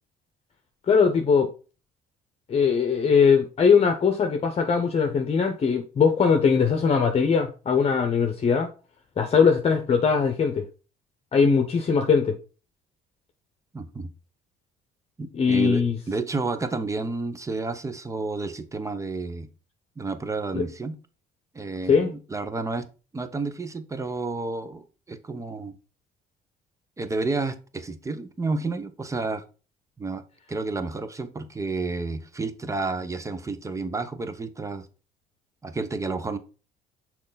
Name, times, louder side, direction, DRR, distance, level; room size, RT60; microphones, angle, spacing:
voice 1, 0.9-1.5 2.5-8.7 9.2-10.6 11.3-12.4 15.3-16.0 20.5-20.6 21.9-22.1, left 6 dB, 35° left, 1.0 m, -21 dB
voice 2, 13.7-14.1 15.2-19.5 20.0-21.0 21.5-22.9 23.1-25.7 27.0-29.4 30.0-30.2 30.5-34.9 35.6-36.4, right 3 dB, 20° right, 0.9 m, -30 dB
6.4 x 4.5 x 4.0 m
cardioid pair, 110°, 17 cm